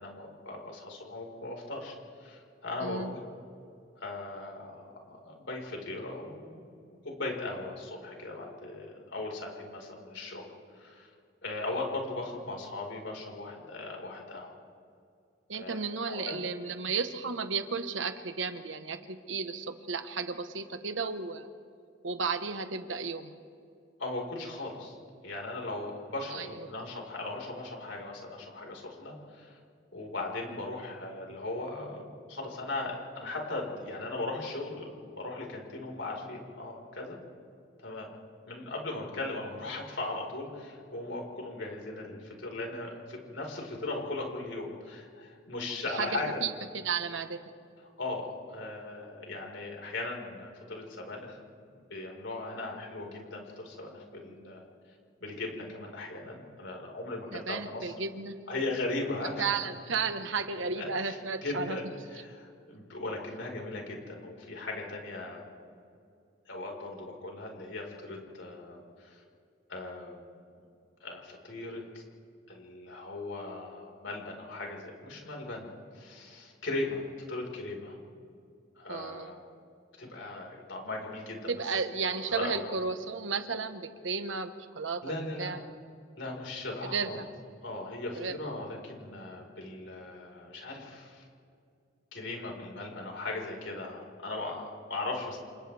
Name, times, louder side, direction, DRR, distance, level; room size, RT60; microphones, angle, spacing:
voice 1, 0.0-1.9 2.2-3.2 3.9-6.7 7.0-10.5 10.7-11.1 11.4-14.5 15.5-16.3 24.0-25.0 25.2-29.6 29.9-37.2 37.8-38.1 38.4-46.4 48.0-51.4 51.9-54.7 55.2-57.9 58.5-59.5 60.8-65.4 66.4-69.2 69.7-70.2 71.0-72.0 72.5-75.7 75.9-78.0 78.8-79.4 80.0-81.7 82.3-82.6 85.0-85.6 86.2-87.2 87.6-91.2 92.1-95.4, left 2 dB, 75° left, 0 dB, 4.9 m, -38 dB
voice 2, 2.8-3.1 15.5-21.5 22.0-23.3 26.3-26.7 45.9-46.1 46.4-47.5 57.3-58.3 59.4-61.8 78.9-79.4 81.5-85.6 86.9-87.3 88.2-88.3, right 5 dB, 80° right, 8 dB, 1.3 m, -33 dB
29.0 x 28.0 x 3.5 m, 2.4 s
head